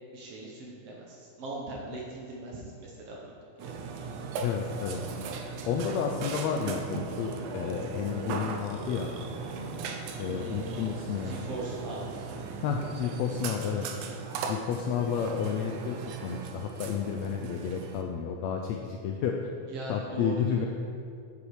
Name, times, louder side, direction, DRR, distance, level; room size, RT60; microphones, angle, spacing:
voice 1, 0.1-3.2 3.6-3.8 10.2-10.8 11.2-12.0 19.7-20.6, right 2 dB, 65° right, -3 dB, 1.7 m, -40 dB
Burping eructation, 3.6-18.0, right 5 dB, 90° right, 2.2 m, -38 dB
voice 2, 4.4-5.0 5.7-9.1 10.2-11.3 12.6-13.9 14.5-19.4 19.9-20.7, left 7 dB, 85° left, 2 dB, 1.5 m, -31 dB
7.1 x 6.6 x 4.7 m, 2.4 s
omnidirectional pair, 3.5 m